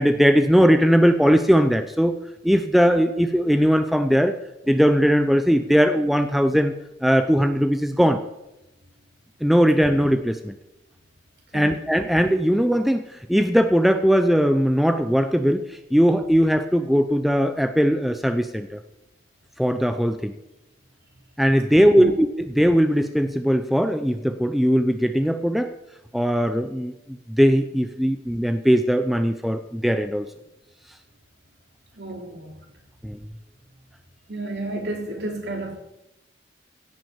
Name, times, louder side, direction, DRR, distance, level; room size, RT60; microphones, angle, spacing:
voice 1, 0.0-2.2 2.4-4.4 4.7-6.7 7.0-8.2 9.4-10.5 11.5-13.0 13.3-18.8 19.6-20.3 21.4-25.7 26.1-26.9 27.3-30.3 33.0-33.2, equal, ahead, 0.6 m, -19 dB
voice 2, 21.8-22.1 32.0-32.6 34.3-35.8, right 2 dB, 65° right, 3.0 m, -31 dB
16.5 x 6.1 x 7.2 m
head